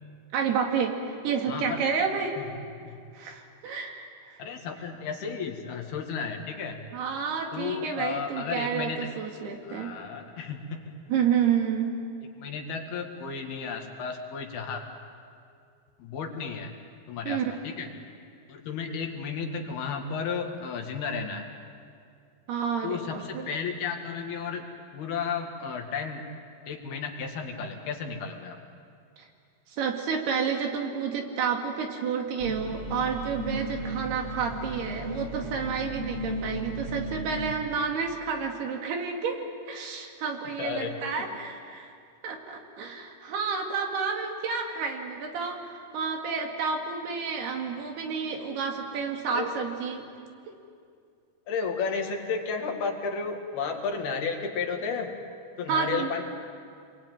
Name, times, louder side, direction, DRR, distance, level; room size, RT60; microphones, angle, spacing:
voice 1, 0.3-2.4 3.1-4.4 6.9-9.9 11.1-11.9 17.2-17.5 22.5-23.5 29.2-29.3 29.7-39.4 39.7-41.9 42.2-50.0 50.5-50.6 55.7-56.1, right 6 dB, 75° right, 3 dB, 4.1 m, -30 dB
voice 2, 1.5-1.8 2.8-3.0 4.4-6.8 7.5-9.1 9.6-10.9 12.4-14.8 16.0-16.7 17.1-17.9 18.5-21.5 22.8-24.7 24.9-26.2 26.7-28.6 40.5-41.0 49.3-49.5 51.5-55.1 55.6-56.2, left 5 dB, 70° left, 3 dB, 3.8 m, -33 dB
sound 1, 32.4-37.5, right 1 dB, 15° left, 1.5 m, -35 dB
28.0 x 21.5 x 9.3 m, 2.3 s
omnidirectional pair, 4.8 m